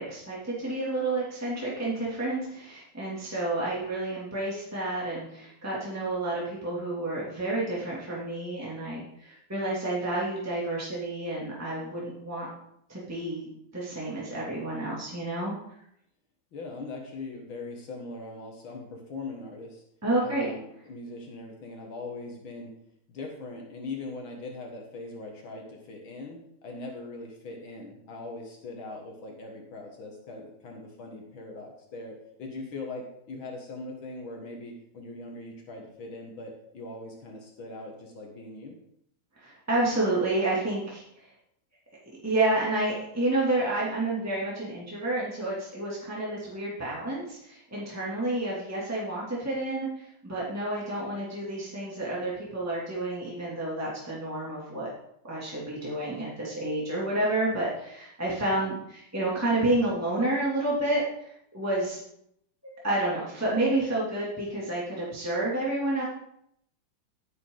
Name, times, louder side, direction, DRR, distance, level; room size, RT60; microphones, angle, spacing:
voice 1, 0.0-12.5 12.9-15.5 20.0-20.5 39.4-41.0 42.2-54.9 55.2-62.0 62.6-66.0, right 2 dB, 5° right, -6 dB, 2.7 m, -30 dB
voice 2, 16.5-19.8 20.2-22.7 23.1-38.8, left 2 dB, 75° left, 1 dB, 2.4 m, -41 dB
11.5 x 9.4 x 3.9 m, 0.74 s
omnidirectional pair, 2.2 m